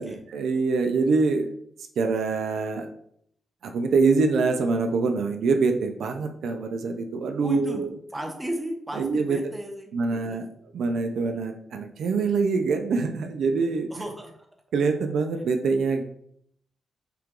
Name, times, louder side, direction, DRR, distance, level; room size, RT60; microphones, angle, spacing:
voice 1, 0.0-1.5 2.0-2.9 3.6-7.9 9.0-9.4 9.9-10.4 10.7-13.9 14.7-16.0, right 4 dB, 80° right, 5 dB, 0.5 m, -24 dB
voice 2, 7.4-7.8 8.1-10.4 13.9-14.5, equal, 10° right, 2 dB, 0.9 m, -34 dB
5.7 x 2.5 x 3.7 m, 0.68 s
wide cardioid pair, 135°, 0 cm